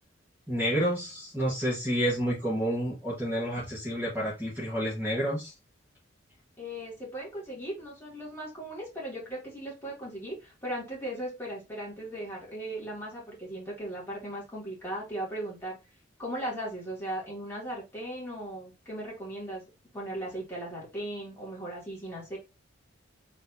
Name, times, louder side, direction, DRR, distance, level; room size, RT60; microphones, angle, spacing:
voice 1, 0.5-5.5, equal, 10° right, -8 dB, 1.7 m, -29 dB
voice 2, 6.6-15.8 16.2-19.6 19.9-22.4, right 1 dB, 10° left, -5 dB, 2.4 m, -37 dB
4.3 x 3.5 x 2.8 m, 0.27 s
head